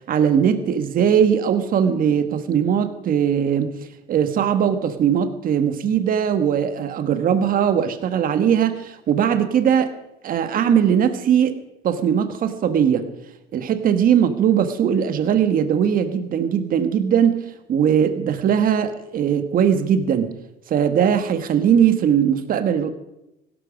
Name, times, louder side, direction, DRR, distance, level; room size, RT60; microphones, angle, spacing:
voice 1, 0.1-3.8 4.1-9.9 10.2-11.6 11.8-13.1 13.5-17.4 17.7-20.3 20.7-22.9, right 8 dB, 55° right, 9 dB, 1.5 m, -19 dB
16.5 x 12.5 x 5.1 m, 0.90 s
cardioid pair, 110°, 17 cm